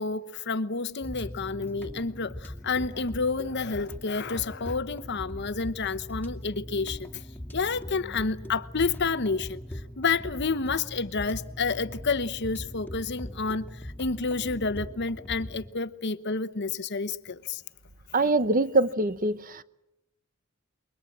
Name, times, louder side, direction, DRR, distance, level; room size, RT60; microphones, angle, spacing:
voice 1, 0.0-7.2 7.5-9.6 10.0-17.6, left 4 dB, 55° left, 1.1 m, -29 dB
sound 1, 1.0-15.7, equal, 10° left, 2.7 m, -41 dB
voice 2, 18.1-19.6, right 2 dB, 40° right, 1.0 m, -24 dB
28.0 x 23.0 x 7.5 m
head